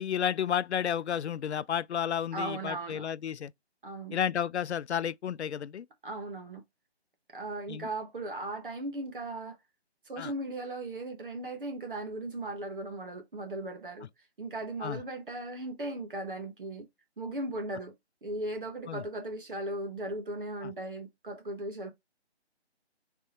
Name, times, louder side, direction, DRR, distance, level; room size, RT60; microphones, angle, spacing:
voice 1, 0.0-3.5 4.1-5.9 7.7-7.9 10.2-10.3 14.8-15.0 18.9-19.0 20.6-20.7, left 9 dB, 85° left, 0.5 m, -32 dB
voice 2, 2.3-3.1 3.8-4.2 6.0-6.6 7.3-9.6 10.0-14.1 14.4-16.9 17.2-17.9 18.2-21.9, right 2 dB, 50° right, 1.3 m, -37 dB
3.5 x 3.3 x 4.1 m
hypercardioid pair, 170°, 33 cm